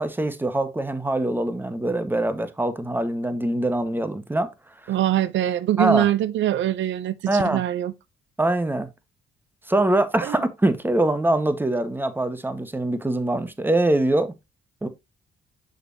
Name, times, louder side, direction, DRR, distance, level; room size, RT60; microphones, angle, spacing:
voice 1, 0.0-4.5 4.8-4.9 5.8-6.1 7.3-7.6 8.4-8.9 9.7-14.3 14.8-14.9, right 1 dB, 10° right, 1.2 m, -23 dB
voice 2, 4.9-7.9 10.2-10.4, right 12 dB, 70° right, 0.5 m, -23 dB
6.6 x 6.4 x 2.7 m
cardioid pair, 90°, 20 cm